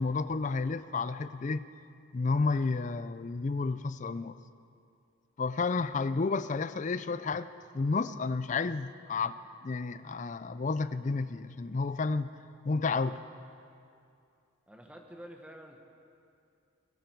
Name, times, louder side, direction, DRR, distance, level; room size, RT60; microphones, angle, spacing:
voice 1, 0.0-1.7 2.1-4.4 5.4-7.5 7.7-12.3 12.6-13.2, left 4 dB, 35° left, 14 dB, 0.4 m, -31 dB
voice 2, 14.7-15.8, equal, 5° right, 2 dB, 1.2 m, -48 dB
18.0 x 17.0 x 4.6 m, 2.5 s
head